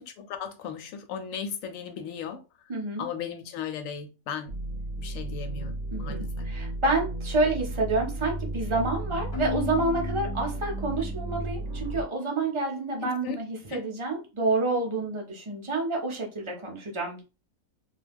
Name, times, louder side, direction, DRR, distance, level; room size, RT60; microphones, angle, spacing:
voice 1, 0.2-2.4 3.0-4.5 5.0-5.7 6.0-6.5 13.0-13.4 13.7-13.8, left 7 dB, 70° left, 0.9 m, -36 dB
voice 2, 2.7-3.1 5.9-17.2, right 3 dB, 35° right, 0.4 m, -28 dB
sound 1, 4.5-12.0, right 1 dB, 65° right, 0.9 m, -33 dB
Keyboard (musical), 9.3-11.1, left 11 dB, 45° left, 0.7 m, -36 dB
2.3 x 2.2 x 3.3 m
omnidirectional pair, 1.5 m